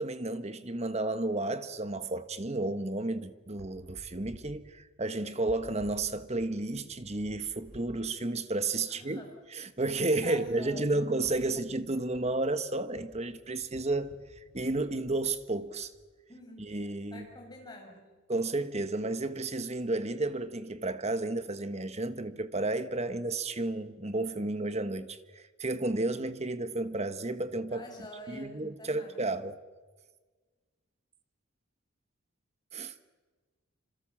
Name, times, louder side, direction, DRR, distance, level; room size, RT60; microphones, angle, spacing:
voice 1, 0.0-9.2 9.5-14.2 14.5-15.9 16.6-17.3 18.3-27.8 28.3-29.6 32.7-32.9, right 2 dB, 30° right, 1.3 m, -32 dB
sound 1, 3.6-8.0 8.3-8.5 9.3-9.4 9.7-16.0 16.8-17.2 19.3-20.4, equal, 85° right, 8.0 m, -56 dB
voice 2, 8.9-9.3 10.2-11.0 11.4-11.5 16.3-16.8 17.1-18.1 27.7-29.2, left 1 dB, 20° left, 6.7 m, -47 dB
27.0 x 26.5 x 7.4 m
head